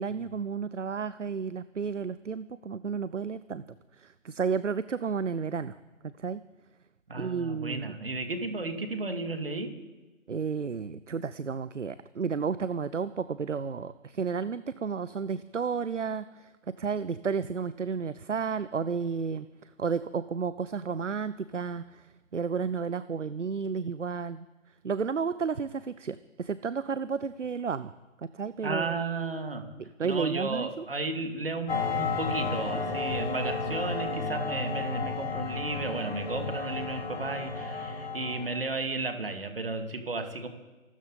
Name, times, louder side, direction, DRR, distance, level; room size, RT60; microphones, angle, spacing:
voice 1, 0.0-3.6 4.0-5.8 6.2-6.4 7.2-8.0 10.3-16.5 16.8-19.5 19.8-22.1 22.3-24.4 24.8-27.9 28.2-28.9 30.0-30.8, right 6 dB, 65° right, 15 dB, 0.7 m, -32 dB
voice 2, 7.1-9.7 28.6-29.6 30.0-40.5, right 3 dB, 45° right, 6 dB, 2.3 m, -33 dB
sound 1, 31.7-38.7, left 4 dB, 45° left, 2.9 m, -32 dB
25.0 x 12.5 x 4.0 m, 1.2 s
figure-of-eight pair, 155°, 39 cm